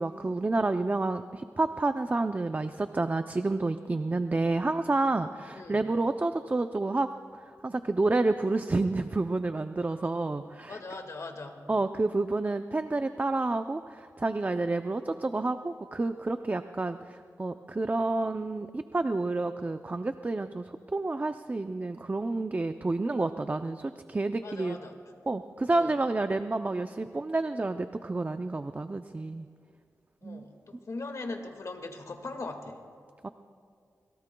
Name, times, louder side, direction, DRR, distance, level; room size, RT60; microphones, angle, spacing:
voice 1, 0.0-7.1 7.3-10.8 11.7-24.8 25.3-29.5 30.2-30.5 33.2-33.3, right 2 dB, 30° right, 8 dB, 0.5 m, -29 dB
voice 2, 5.4-5.8 10.7-11.7 24.4-25.0 25.7-25.9 30.2-32.8, left 3 dB, 60° left, 4 dB, 1.9 m, -40 dB
28.5 x 22.0 x 2.3 m, 2.3 s
wide cardioid pair, 85°, 6 cm